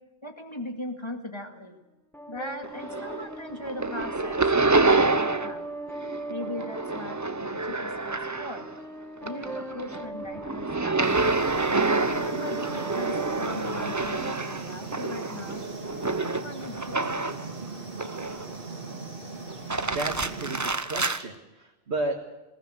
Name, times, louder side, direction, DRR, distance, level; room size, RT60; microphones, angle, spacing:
voice 1, 0.2-1.8 2.3-5.7 6.3-8.7 9.2-11.0 12.0-15.7 16.1-17.1, left 1 dB, 25° left, 4 dB, 2.1 m, -39 dB
sound 1, 2.1-15.2, right 2 dB, ahead, 1.3 m, -41 dB
sound 2, 2.6-3.3 3.6-5.6 5.9-8.8 9.2-17.5 18.0-18.7 19.5-21.2, right 3 dB, 20° right, 0.6 m, -28 dB
sound 3, 11.0-20.7, right 3 dB, 55° right, 3.1 m, -39 dB
voice 2, 19.9-22.2, right 2 dB, 80° right, 0 dB, 2.0 m, -33 dB
20.0 x 18.5 x 7.8 m, 1.0 s
omnidirectional pair, 1.1 m